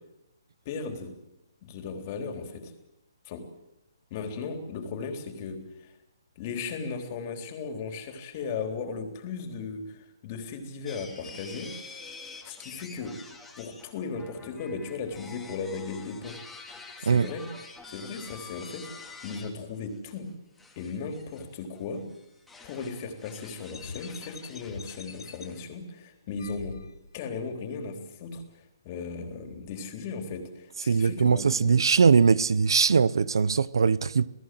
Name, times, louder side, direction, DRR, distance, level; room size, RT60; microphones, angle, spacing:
voice 1, 0.7-1.1 1.6-2.7 3.3-3.4 4.1-5.9 6.4-11.7 12.4-13.2 13.6-16.4 17.0-17.5 17.9-20.3 20.8-22.0 22.6-26.8 27.1-28.4 28.8-31.8, left 4 dB, 30° left, 3.7 m, -36 dB
sound 1, 10.9-19.5 19.9-20.2 20.6-25.6, left 4 dB, 5° left, 2.6 m, -47 dB
sound 2, 23.7-25.5 26.3-27.3, left 5 dB, 80° left, 1.8 m, -43 dB
voice 2, 30.9-34.3, right 5 dB, 85° right, 0.8 m, -21 dB
28.5 x 18.5 x 7.8 m
hypercardioid pair, 160°, 2 cm